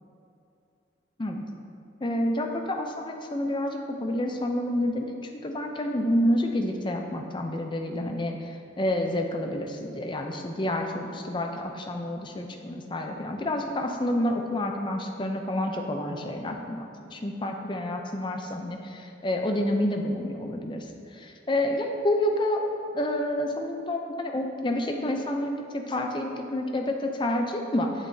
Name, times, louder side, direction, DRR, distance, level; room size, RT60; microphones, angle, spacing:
voice 1, 2.0-5.1 5.4-8.3 8.8-20.8 21.2-28.1, left 1 dB, 25° left, 3 dB, 0.5 m, -29 dB
8.3 x 7.1 x 2.7 m, 2.6 s
head